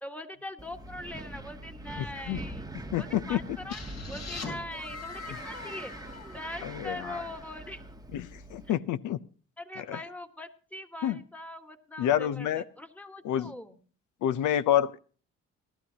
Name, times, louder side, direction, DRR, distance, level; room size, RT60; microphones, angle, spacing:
voice 1, 0.0-3.8 4.1-5.9 6.3-7.8 8.7-8.8 9.6-13.8, left 1 dB, 5° left, 8 dB, 1.5 m, -42 dB
Wind, 0.6-8.7, right 2 dB, 10° right, 1.0 m, -43 dB
voice 2, 2.0-2.4 2.9-3.4 6.6-7.2 8.1-9.2 9.8-10.0 11.0-11.2 12.0-12.6 13.2-13.5 14.2-15.0, left 11 dB, 80° left, 15 dB, 0.7 m, -28 dB
sound 1, 3.7-7.4, left 3 dB, 60° left, 4.2 m, -42 dB
18.0 x 12.5 x 2.8 m, 0.40 s
cardioid pair, 90°, 30 cm